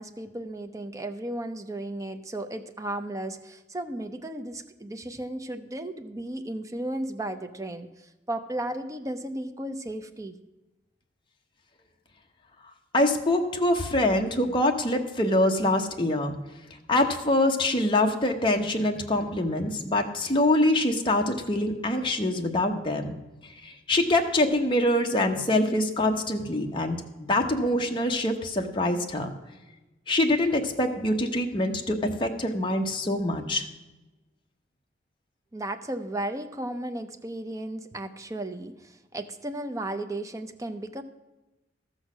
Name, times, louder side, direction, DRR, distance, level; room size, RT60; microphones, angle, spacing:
voice 1, 0.0-10.3 35.5-41.0, right 1 dB, 15° right, 7 dB, 0.5 m, -35 dB
voice 2, 12.9-16.3 16.9-23.1 23.6-29.3 30.1-33.7, left 1 dB, 25° left, 2 dB, 0.9 m, -25 dB
13.5 x 6.4 x 6.1 m, 1.1 s
head